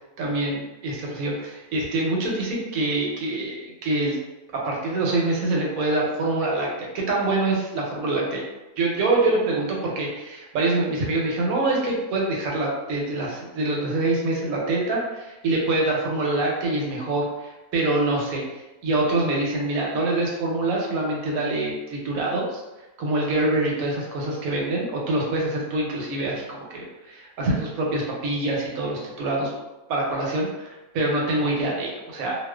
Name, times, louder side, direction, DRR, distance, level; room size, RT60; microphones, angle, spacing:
voice 1, 0.2-4.2 4.5-8.4 8.8-22.6 23.0-29.5 29.9-32.4, right 2 dB, 75° right, -2 dB, 1.0 m, -25 dB
2.3 x 2.3 x 2.2 m, 1.0 s
omnidirectional pair, 1.6 m